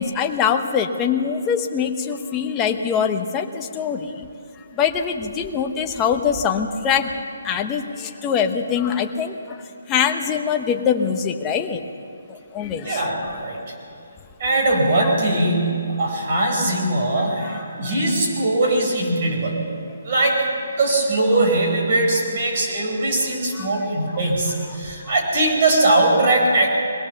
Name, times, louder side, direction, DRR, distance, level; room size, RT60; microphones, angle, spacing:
voice 1, 0.0-4.3 4.7-7.1 7.4-9.6 9.9-11.8 12.3-13.1 17.1-17.3 17.5-17.6 23.5-23.7, left 7 dB, 15° left, 4 dB, 0.9 m, -23 dB
voice 2, 12.7-13.7 14.4-19.6 20.0-20.5 20.8-26.7, right 2 dB, 35° right, 0 dB, 4.9 m, -20 dB
22.0 x 17.5 x 7.0 m, 2.5 s
hypercardioid pair, 170°, 0 cm